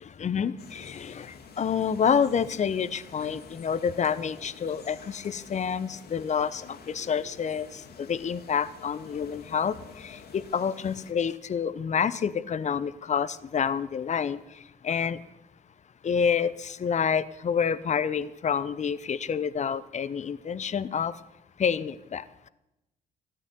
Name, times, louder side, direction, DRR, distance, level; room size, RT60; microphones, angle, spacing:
voice 1, 0.2-9.8 10.0-14.4 14.8-15.2 16.0-21.1 21.6-22.2, left 7 dB, 35° left, 15 dB, 0.9 m, -28 dB
sound 1, 0.6-11.1, left 5 dB, 55° left, 2.2 m, -49 dB
14.0 x 9.0 x 9.3 m, 0.89 s
hypercardioid pair, 55°, 20 cm